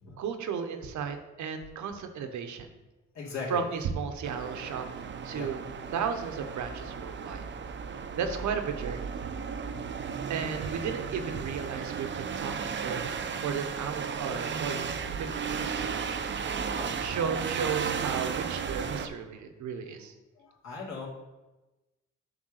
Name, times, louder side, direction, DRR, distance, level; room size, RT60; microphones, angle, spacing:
voice 1, 0.2-2.7 3.5-4.9 5.2-5.6 5.9-7.5 8.2-9.1 10.3-16.2 17.0-20.1, right 6 dB, 70° right, 7 dB, 1.0 m, -34 dB
voice 2, 3.1-3.6 5.3-5.5 7.2-7.3 9.6-9.8 16.7-17.2 17.5-17.6 20.4-21.1, left 4 dB, 65° left, -4 dB, 2.9 m, -40 dB
sound 1, 4.2-19.1, right 6 dB, 40° right, 0.6 m, -35 dB
7.8 x 3.5 x 6.5 m, 1.1 s
cardioid pair, 90°, 30 cm